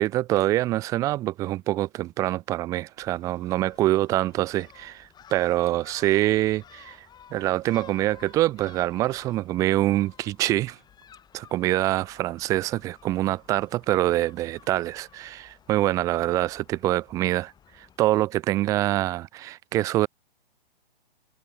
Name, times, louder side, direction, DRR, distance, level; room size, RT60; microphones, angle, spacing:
voice 1, 0.0-7.1 7.3-10.8 11.3-20.1, right 15 dB, 10° right, 0.5 m, -25 dB
Gull seagull, 3.0-18.0, left 8 dB, 15° left, 7.7 m, -54 dB
hypercardioid pair, 150°, 31 cm